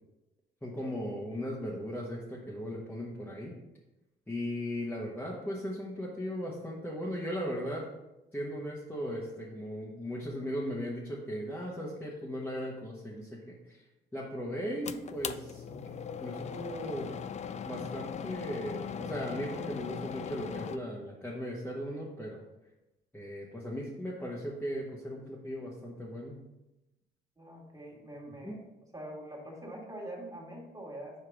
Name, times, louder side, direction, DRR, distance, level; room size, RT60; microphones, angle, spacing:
voice 1, 0.6-3.5 4.3-7.8 8.3-13.8 14.1-15.9 16.2-17.1 17.6-22.4 23.1-26.4 28.4-28.6, equal, 10° left, -5 dB, 1.2 m, -37 dB
sound 1, 14.9-20.8, left 7 dB, 35° left, 0.4 m, -39 dB
voice 2, 27.4-28.7 28.9-31.3, right 1 dB, 15° right, -3 dB, 1.9 m, -44 dB
5.0 x 4.7 x 4.8 m, 0.97 s
cardioid pair, 90°, 20 cm